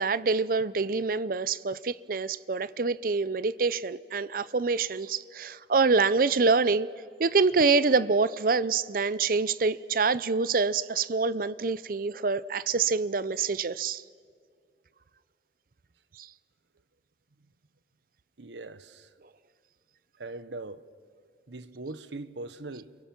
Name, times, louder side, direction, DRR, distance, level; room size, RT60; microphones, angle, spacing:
voice 1, 0.0-6.9 7.2-14.0 16.2-16.3, right 4 dB, 50° right, 0.6 m, -26 dB
voice 2, 18.4-19.1 20.2-20.8 21.5-23.0, right 2 dB, 75° right, 0.9 m, -40 dB
30.0 x 23.0 x 6.0 m
head